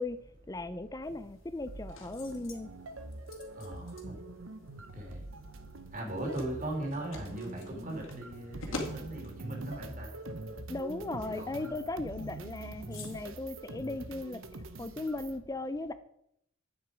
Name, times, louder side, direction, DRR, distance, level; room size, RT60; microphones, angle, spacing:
voice 1, 0.0-2.7 10.7-14.5 14.8-15.9, left 2 dB, 15° left, 12 dB, 0.4 m, -37 dB
Opening Lock, 1.0-14.8, left 3 dB, 65° left, 2.3 m, -49 dB
sound 1, 1.7-15.4, right 2 dB, 70° right, 1.0 m, -44 dB
voice 2, 3.5-4.1 4.9-5.2 5.9-10.1 11.2-11.7, right 1 dB, 40° right, 0 dB, 3.1 m, -39 dB
11.0 x 8.8 x 5.0 m, 0.75 s
head